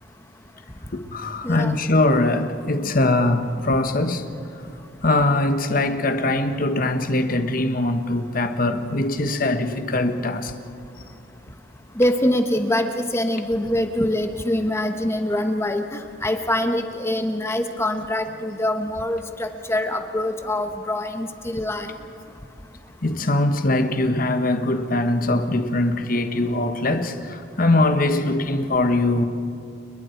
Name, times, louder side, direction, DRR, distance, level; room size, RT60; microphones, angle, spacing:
voice 1, 0.9-4.2 5.0-10.5 23.0-29.2, left 2 dB, 50° left, 1.3 m, -22 dB
voice 2, 1.4-1.8 12.0-21.9, left 1 dB, 15° left, 1.1 m, -24 dB
30.0 x 21.0 x 4.6 m
head